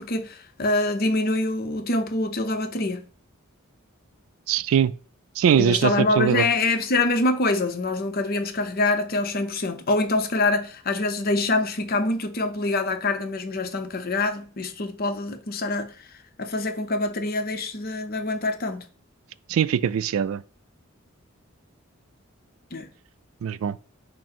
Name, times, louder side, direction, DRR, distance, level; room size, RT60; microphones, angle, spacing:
voice 1, 0.0-3.0 5.6-15.9 16.4-18.9 22.7-22.9, left 2 dB, 45° left, 0.7 m, -25 dB
voice 2, 4.5-4.9 5.4-6.5 19.5-20.4 23.4-23.8, right 8 dB, 80° right, 0.3 m, -21 dB
6.1 x 2.0 x 4.3 m
head